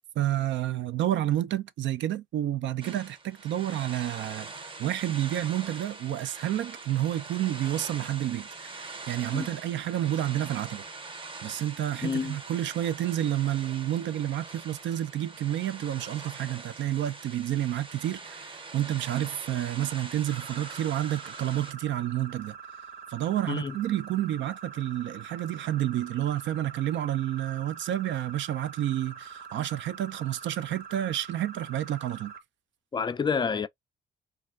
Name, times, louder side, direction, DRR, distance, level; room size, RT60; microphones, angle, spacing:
voice 1, 0.2-4.5 4.8-10.8 11.4-22.6 23.1-32.3, right 12 dB, 70° right, 0.5 m, -30 dB
sound 1, 2.8-21.7, right 3 dB, 25° right, 0.7 m, -43 dB
voice 2, 12.0-12.4 23.5-23.7 32.9-33.7, left 5 dB, 25° left, 0.3 m, -28 dB
sound 2, 20.3-32.4, right 6 dB, 50° right, 0.9 m, -45 dB
3.3 x 2.3 x 2.3 m
cardioid pair, 90°, 20 cm